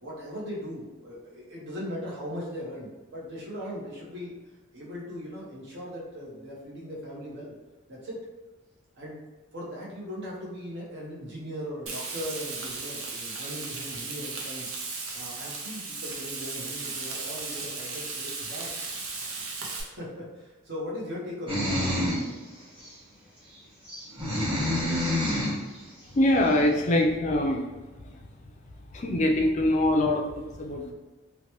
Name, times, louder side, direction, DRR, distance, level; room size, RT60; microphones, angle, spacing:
voice 1, 0.0-4.3 4.7-7.5 7.9-8.2 8.9-9.2 9.5-14.7 15.1-18.9 19.6-21.6, equal, 55° right, -5 dB, 0.8 m, -39 dB
Frying (food), 11.9-19.8, right 3 dB, 80° right, 0.5 m, -36 dB
sound 1, 21.5-22.3 22.8-22.9 23.8-25.6, left 1 dB, 25° right, 1.1 m, -27 dB
voice 2, 26.1-27.6 28.1-28.2 28.9-30.9, left 1 dB, 35° left, 1 dB, 0.4 m, -24 dB
3.0 x 2.1 x 2.9 m, 1.2 s
head